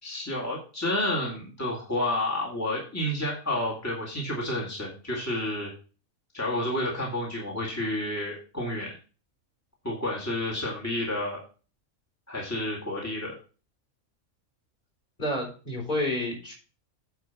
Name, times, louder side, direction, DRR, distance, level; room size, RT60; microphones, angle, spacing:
voice 1, 0.0-5.7 6.3-9.0 9.8-11.4 12.3-13.3, left 1 dB, 10° left, -4 dB, 2.1 m, -30 dB
voice 2, 15.2-16.5, left 1 dB, 40° left, -2 dB, 4.3 m, -29 dB
9.4 x 4.8 x 5.9 m, 0.36 s
omnidirectional pair, 1.4 m